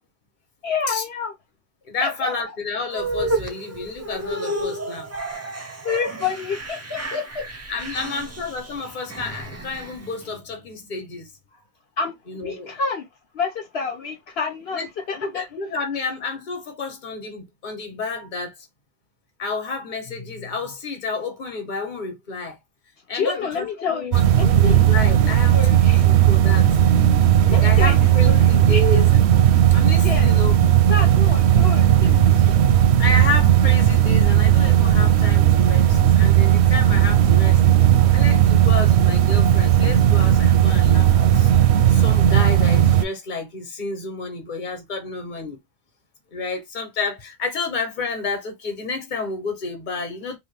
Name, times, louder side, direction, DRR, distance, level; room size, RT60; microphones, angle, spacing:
voice 1, 0.6-1.3 2.0-2.3 5.8-7.5 8.1-8.2 12.0-13.1 13.3-15.4 23.1-24.9 25.2-26.1 27.5-29.1 30.0-30.3 30.9-32.6, left 5 dB, 75° left, 1.0 m, -29 dB
voice 2, 1.9-5.1 7.7-11.3 12.3-12.7 14.7-14.9 15.1-18.6 19.4-22.6 23.1-24.2 24.6-26.7 27.5-29.1 29.7-30.5 33.0-37.6 38.1-41.5 41.9-45.6 46.3-50.4, left 3 dB, 50° left, 1.1 m, -30 dB
sound 1, 2.9-10.3, right 1 dB, 25° right, 0.3 m, -31 dB
sound 2, 24.1-43.0, right 11 dB, 85° right, 0.8 m, -16 dB
3.1 x 2.4 x 3.3 m
omnidirectional pair, 1.1 m